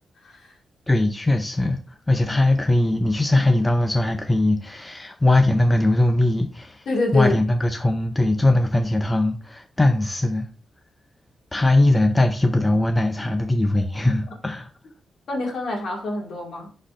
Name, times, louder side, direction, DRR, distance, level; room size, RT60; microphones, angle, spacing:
voice 1, 0.2-0.5 6.9-7.3 15.3-16.7, left 2 dB, 55° left, 2.1 m, -26 dB
voice 2, 0.9-6.9 7.1-10.5 11.5-14.7, left 2 dB, 10° left, 0.5 m, -20 dB
11.0 x 4.1 x 2.5 m
wide cardioid pair, 165°, 0 cm